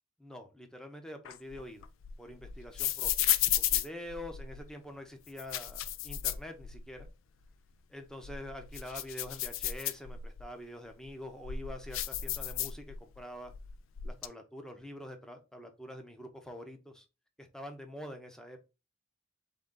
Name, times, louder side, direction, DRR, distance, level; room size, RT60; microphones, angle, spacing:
voice 1, 0.2-1.9 2.2-7.1 7.9-13.5 14.0-17.1 17.4-18.6, left 1 dB, 5° left, 5 dB, 0.8 m, -46 dB
sound 1, 1.2-4.7 5.3-7.1 7.4-7.5 8.1-10.4 11.0-13.2 13.5-14.3, left 11 dB, 75° left, 0.4 m, -34 dB
3.9 x 3.4 x 3.8 m, 0.28 s
head